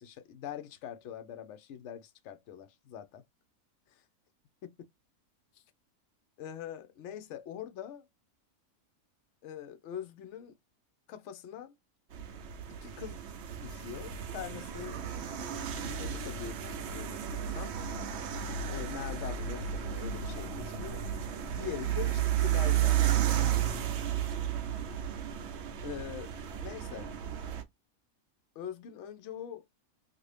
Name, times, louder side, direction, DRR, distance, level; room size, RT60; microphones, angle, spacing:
voice 1, 0.0-3.2 3.9-4.0 5.5-5.6 6.4-8.1 9.4-10.5 11.1-11.7 12.8-13.2 13.6-15.0 15.5-17.7 18.7-23.2 25.8-26.3 26.6-27.1 28.6-29.6, left 9 dB, 65° left, 0.8 m, -43 dB
sound 1, 12.1-27.6, right 10 dB, 70° right, 0.6 m, -33 dB
2.7 x 2.5 x 3.2 m
omnidirectional pair, 1.6 m